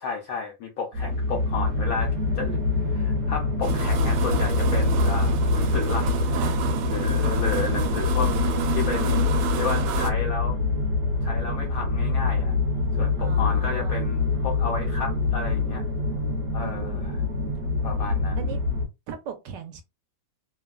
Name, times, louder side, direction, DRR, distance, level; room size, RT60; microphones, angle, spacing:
voice 1, 0.0-2.6 2.9-6.1 6.9-9.3 9.6-10.6 11.2-12.5 13.0-15.8 16.5-17.2 17.8-18.5, left 4 dB, 75° left, 0.8 m, -32 dB
sound 1, 0.9-18.9, left 3 dB, 50° right, 1.1 m, -25 dB
sound 2, 3.6-10.1, right 11 dB, 85° right, 1.4 m, -30 dB
voice 2, 6.0-7.3 13.2-14.0 16.6-17.2 18.4-18.6 19.1-19.8, right 8 dB, 70° right, 1.2 m, -40 dB
3.2 x 2.3 x 2.3 m
omnidirectional pair, 2.1 m